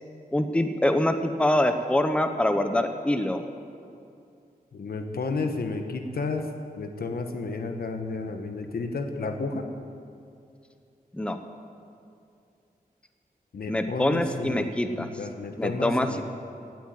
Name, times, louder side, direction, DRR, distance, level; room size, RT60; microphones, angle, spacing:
voice 1, 0.3-3.5 11.1-11.4 13.7-15.1 15.6-16.2, left 1 dB, 5° left, 7 dB, 0.8 m, -25 dB
voice 2, 4.7-6.5 6.8-9.6 13.5-14.7 14.9-16.2, left 3 dB, 75° left, 5 dB, 1.4 m, -32 dB
16.5 x 9.5 x 9.2 m, 2.5 s
wide cardioid pair, 155°, 16 cm